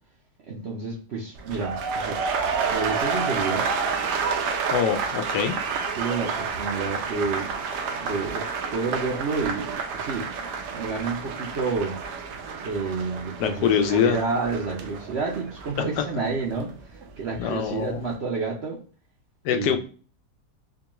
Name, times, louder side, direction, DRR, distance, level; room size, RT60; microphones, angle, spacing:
voice 1, 0.5-2.2 2.6-3.7 6.0-7.5 8.0-10.3 10.7-12.0 12.6-16.8 17.2-18.8 19.5-19.8, right 4 dB, 65° right, -2 dB, 0.6 m, -29 dB
sound 1, 1.4-17.4 17.7-18.2, right 5 dB, 90° right, 1.2 m, -30 dB
voice 2, 4.7-5.6 13.4-14.2 15.8-15.9 17.4-18.0 19.4-19.8, left 8 dB, 85° left, 7 dB, 1.2 m, -24 dB
4.6 x 2.3 x 2.9 m, 0.39 s
omnidirectional pair, 1.7 m